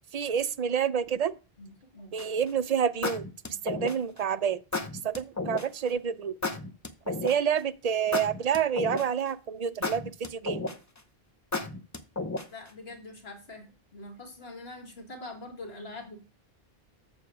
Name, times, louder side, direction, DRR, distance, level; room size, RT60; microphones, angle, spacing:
voice 1, 0.1-1.3 2.1-3.2 3.6-4.6 5.0-6.4 7.1-10.7, right 7 dB, 50° right, 0.5 m, -28 dB
voice 2, 1.6-2.2 3.5-3.6 12.2-13.7 13.9-16.2, left 2 dB, 85° left, 2.2 m, -44 dB
sound 1, 2.2-2.5 3.0-4.2 4.7-5.7 6.4-7.6 8.1-9.3 9.8-11.0 11.5-12.7, left 3 dB, 20° left, 0.6 m, -32 dB
7.1 x 6.9 x 4.7 m
omnidirectional pair, 1.0 m